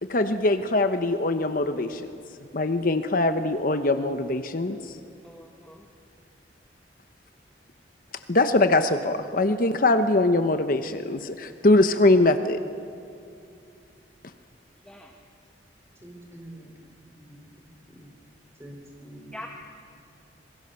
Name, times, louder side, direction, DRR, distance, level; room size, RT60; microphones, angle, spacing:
voice 1, 0.0-5.0 8.1-12.6 14.2-14.3, left 2 dB, 50° left, 8 dB, 1.0 m, -23 dB
voice 2, 5.2-5.8 14.8-15.1 19.3-19.5, left 1 dB, 5° left, 0 dB, 1.6 m, -43 dB
voice 3, 16.0-18.1 18.6-19.5, right 1 dB, 15° right, 1 dB, 4.1 m, -47 dB
27.0 x 22.5 x 6.9 m, 2.5 s
head